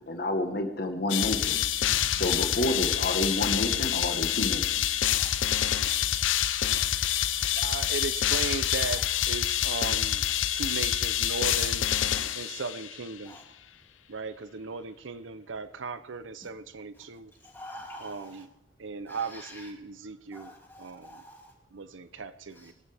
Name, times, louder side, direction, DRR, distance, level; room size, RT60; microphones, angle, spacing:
voice 1, 0.1-1.6 2.1-4.8, left 1 dB, 50° left, 1.4 m, -29 dB
sound 1, 1.1-13.0, left 11 dB, 90° left, 0.6 m, -27 dB
voice 2, 1.9-2.2 5.2-5.5 7.8-7.9 8.9-9.0 12.2-12.3 13.2-13.4 16.4-16.5 17.4-18.4 19.1-19.7 20.3-21.5 22.6-22.7, left 1 dB, 10° left, 2.8 m, -47 dB
voice 3, 7.6-10.2 10.5-11.9 12.3-13.4 14.1-17.3 18.0-18.5 18.8-21.2 21.7-22.7, right 4 dB, 85° right, 0.7 m, -37 dB
22.0 x 12.0 x 3.5 m
head